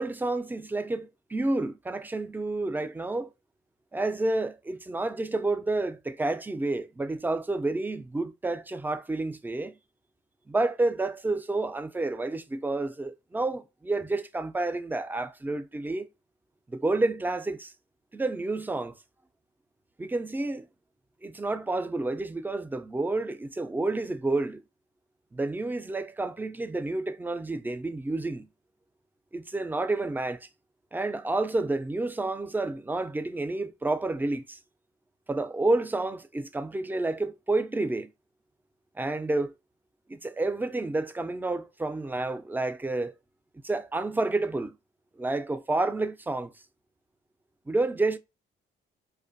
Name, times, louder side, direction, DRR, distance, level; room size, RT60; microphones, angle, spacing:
voice 1, 0.0-3.3 3.9-9.8 10.5-16.1 16.7-17.7 18.1-19.0 20.0-20.7 21.2-24.6 25.3-28.5 29.3-30.5 30.9-34.6 35.3-38.1 39.0-39.5 40.1-43.1 43.6-44.8 45.2-46.5 47.7-48.2, right 2 dB, 10° right, 0.3 m, -29 dB
4.9 x 2.2 x 2.5 m
cardioid pair, 90°, 20 cm